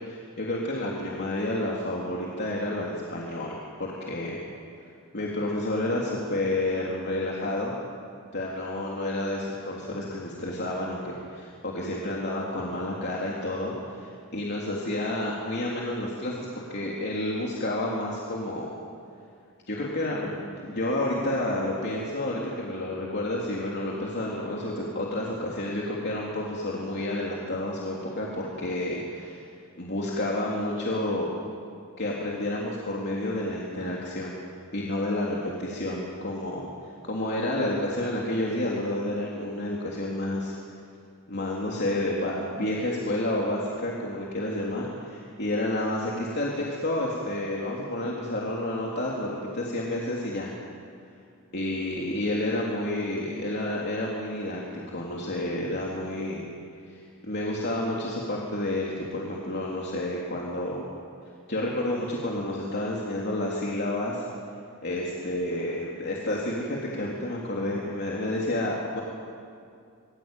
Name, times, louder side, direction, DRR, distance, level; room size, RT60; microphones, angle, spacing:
voice 1, 0.1-4.4 5.1-7.8 8.3-18.8 19.7-29.3 29.8-31.3 32.0-34.4 34.7-40.5 41.3-50.5 51.5-54.6 54.9-56.4 56.9-60.9 61.5-64.2 64.8-69.0, left 1 dB, 55° left, -3 dB, 3.4 m, -30 dB
27.0 x 22.5 x 9.2 m, 2.3 s
head